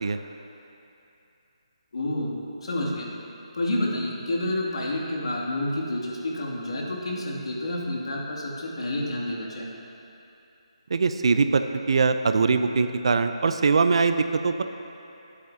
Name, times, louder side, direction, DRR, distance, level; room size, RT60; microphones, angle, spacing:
voice 1, 1.9-3.1 3.5-9.8, left 1 dB, 65° left, -3 dB, 2.5 m, -29 dB
voice 2, 10.9-14.6, right 4 dB, 55° right, 9 dB, 0.6 m, -22 dB
22.0 x 8.5 x 2.8 m, 2.8 s
hypercardioid pair, 165°, 3 cm